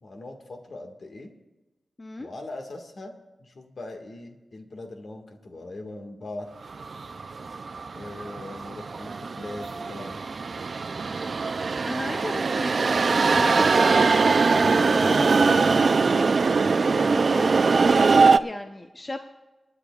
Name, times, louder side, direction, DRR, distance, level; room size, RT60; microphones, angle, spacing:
voice 1, 0.0-1.3 2.2-3.1 3.4-6.5 7.9-10.2, left 2 dB, 60° left, 3 dB, 1.7 m, -40 dB
voice 2, 2.0-2.3 11.8-17.5 18.4-19.2, left 2 dB, 30° left, 5 dB, 0.6 m, -35 dB
sound 1, 6.7-18.4, right 4 dB, 60° right, 0.4 m, -22 dB
28.5 x 9.9 x 2.4 m, 1.1 s
wide cardioid pair, 85°, 0 cm